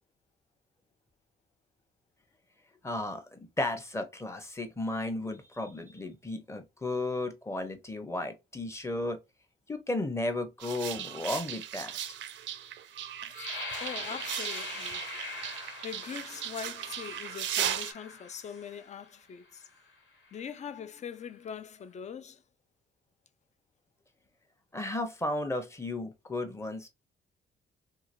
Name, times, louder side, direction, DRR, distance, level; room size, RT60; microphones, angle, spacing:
voice 1, 2.8-9.2 9.7-12.0 24.7-26.9, left 2 dB, 15° left, 0.8 m, -34 dB
sound 1, 10.6-17.9, right 10 dB, 70° right, 0.5 m, -37 dB
sound 2, 13.3-19.0 19.6-19.8 20.3-20.7, left 3 dB, 70° left, 1.6 m, -42 dB
voice 2, 13.8-15.1 15.8-19.7 20.3-22.4, left 7 dB, 35° left, 0.4 m, -42 dB
2.8 x 2.8 x 2.6 m
cardioid pair, 90°, 20 cm